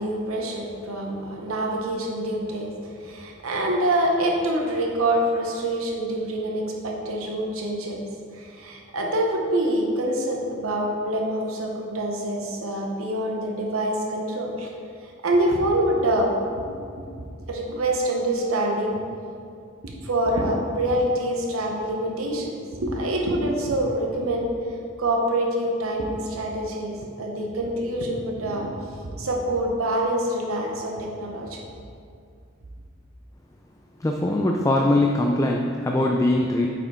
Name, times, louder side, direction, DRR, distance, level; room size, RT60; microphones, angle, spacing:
voice 1, 0.0-2.7 3.0-8.0 8.3-14.7 15.2-17.0 17.5-19.0 19.8-24.5 25.0-28.7 29.0-31.6, right 1 dB, 80° right, 0 dB, 0.9 m, -26 dB
voice 2, 34.0-36.7, left 1 dB, 15° left, 1 dB, 0.3 m, -21 dB
8.2 x 5.6 x 3.6 m, 2.3 s
head